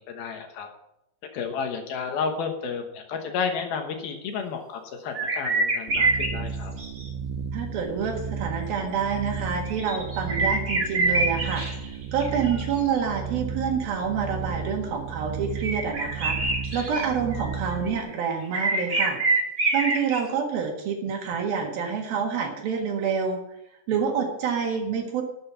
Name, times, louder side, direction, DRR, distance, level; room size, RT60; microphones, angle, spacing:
voice 1, 0.1-0.7 1.3-6.7, left 5 dB, 70° left, 4 dB, 2.7 m, -31 dB
sound 1, 5.1-6.3 6.8-7.1 9.1-11.9 12.2-12.9 15.6-17.1 17.3-18.1 18.5-20.2, right 2 dB, 45° right, 0.9 m, -26 dB
sound 2, 5.9-18.0, right 6 dB, 90° right, 3.1 m, -34 dB
voice 2, 7.5-19.2 19.7-23.4 23.9-25.2, right 6 dB, 60° right, 2 dB, 3.2 m, -28 dB
13.0 x 7.8 x 5.7 m, 0.83 s
omnidirectional pair, 5.3 m